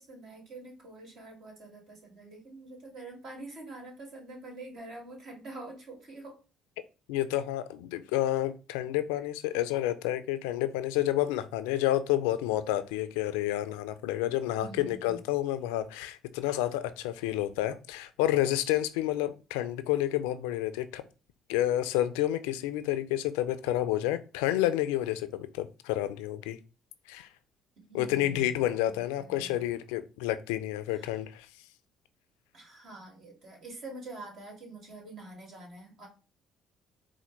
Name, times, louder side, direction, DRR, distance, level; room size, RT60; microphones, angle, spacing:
voice 1, 0.0-6.4 14.6-15.2 27.9-28.4 29.2-29.5 31.0-31.1 32.5-36.1, right 2 dB, 60° right, 1.7 m, -46 dB
voice 2, 7.1-21.0 21.5-26.6 27.1-27.3 27.9-31.5, left 13 dB, 85° left, 0.3 m, -29 dB
4.2 x 2.1 x 3.0 m
supercardioid pair, 65°, 0 cm